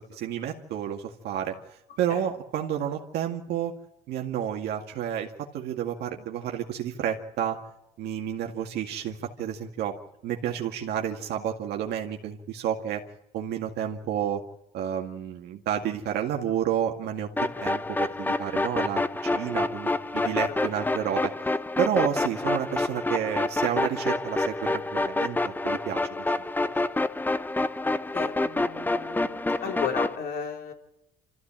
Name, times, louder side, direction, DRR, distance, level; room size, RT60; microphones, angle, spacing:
voice 1, 0.0-1.6 2.0-3.7 4.1-7.6 8.0-9.9 10.2-13.0 13.3-14.4 14.7-21.3 21.8-26.3, right 10 dB, 75° right, 2 dB, 2.1 m, -30 dB
sound 1, 17.4-30.2, left 2 dB, 10° left, 0.8 m, -28 dB
voice 2, 20.2-20.6 26.6-26.9 28.1-30.7, left 6 dB, 65° left, 3 dB, 4.4 m, -35 dB
26.5 x 14.5 x 8.9 m, 0.86 s
cardioid pair, 110°, 17 cm